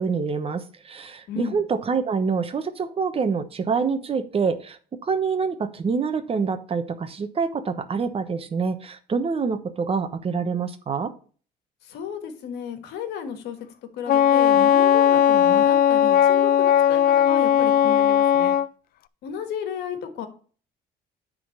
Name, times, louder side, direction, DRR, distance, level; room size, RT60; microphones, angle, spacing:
voice 1, 0.0-11.1, right 5 dB, 35° right, 10 dB, 1.0 m, -26 dB
voice 2, 1.3-1.6 11.8-13.6 13.9-18.6 19.2-20.3, left 8 dB, 80° left, 8 dB, 1.7 m, -33 dB
Wind instrument woodwind instrument, 14.1-18.7, left 10 dB, 60° left, 0.5 m, -18 dB
9.4 x 3.9 x 6.6 m, 0.41 s
cardioid pair, 110°, 17 cm